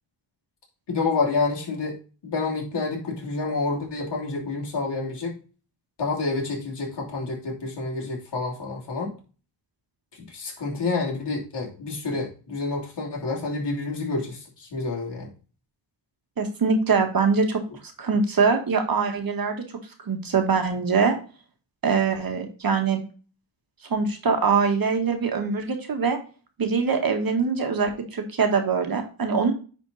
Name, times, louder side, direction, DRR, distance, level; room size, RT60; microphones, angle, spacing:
voice 1, 0.9-2.0 2.2-5.4 6.0-9.1 10.1-15.3, left 3 dB, 60° left, -2 dB, 3.2 m, -28 dB
voice 2, 16.4-17.6 18.0-19.6 20.1-21.2 21.8-23.0 23.9-26.2 26.6-29.5, right 5 dB, 45° right, 5 dB, 1.7 m, -23 dB
9.8 x 4.4 x 4.0 m, 0.36 s
cardioid pair, 115°, 47 cm